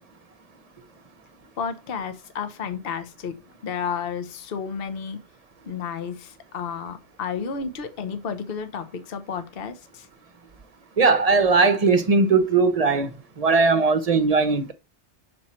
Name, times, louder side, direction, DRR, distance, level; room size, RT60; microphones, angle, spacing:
voice 1, 1.6-3.4 3.6-5.2 5.6-10.1, left 6 dB, 55° left, 1.0 m, -32 dB
voice 2, 11.0-13.1 13.4-14.7, right 4 dB, 35° right, 0.8 m, -19 dB
6.3 x 4.4 x 4.2 m
omnidirectional pair, 1.2 m